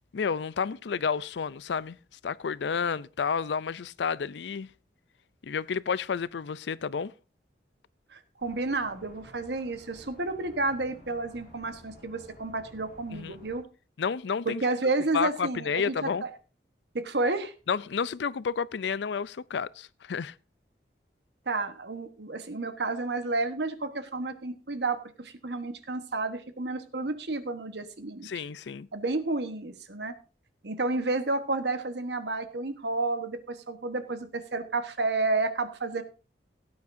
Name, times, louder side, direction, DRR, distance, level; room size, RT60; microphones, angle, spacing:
voice 1, 0.1-2.0 2.2-4.7 5.4-7.1 13.1-13.4 14.0-14.6 15.1-16.2 17.7-20.3 28.2-28.9, left 6 dB, 80° left, 0.4 m, -30 dB
voice 2, 8.1-13.6 14.4-16.1 16.9-17.5 21.5-28.3 28.9-30.1 30.6-36.0, right 3 dB, 70° right, 1.3 m, -31 dB
sound 1, 8.4-13.6, left 1 dB, 50° left, 5.6 m, -53 dB
17.0 x 9.4 x 2.7 m
head